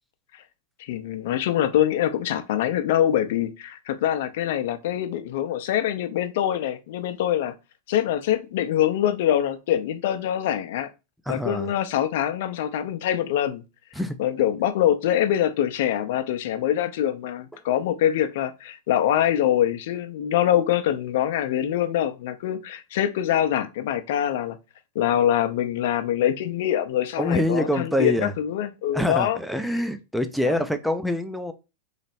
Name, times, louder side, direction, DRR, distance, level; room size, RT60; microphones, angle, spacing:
voice 1, 0.8-7.5 7.9-10.9 11.3-13.6 14.2-24.6 24.9-29.4 30.4-30.6, left 11 dB, 65° left, 0.6 m, -24 dB
voice 2, 11.3-11.7 14.0-14.2 27.2-28.3 28.9-31.5, left 1 dB, ahead, 0.6 m, -25 dB
3.3 x 2.9 x 4.2 m
hypercardioid pair, 115°, 0 cm